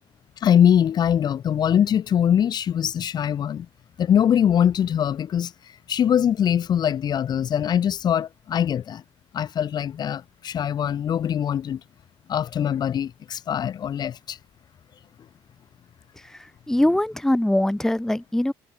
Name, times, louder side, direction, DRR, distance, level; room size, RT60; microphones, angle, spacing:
voice 1, 0.4-3.7 4.0-5.5 5.9-9.0 9.3-11.8 12.3-14.4, left 9 dB, 45° left, 3.2 m, -22 dB
voice 2, 16.2-18.5, left 1 dB, 5° left, 2.0 m, -22 dB
cardioid pair, 125°, 10 cm